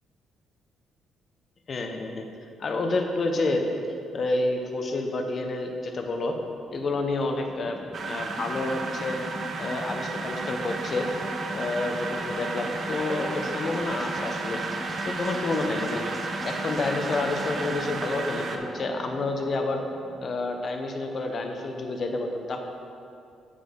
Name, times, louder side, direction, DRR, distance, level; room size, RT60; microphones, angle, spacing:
voice 1, 1.7-2.3 2.6-3.6 4.1-6.4 6.7-9.2 9.6-11.1 11.5-14.6 15.0-16.0 16.4-19.8 20.2-22.6, left 2 dB, 45° left, 4 dB, 0.8 m, -29 dB
sound 1, 6.5-20.3, equal, 15° right, 0.7 m, -38 dB
sound 2, 7.9-18.6, right 4 dB, 55° right, 0.6 m, -34 dB
8.2 x 5.5 x 3.8 m, 2.5 s
cardioid pair, 90°, 0 cm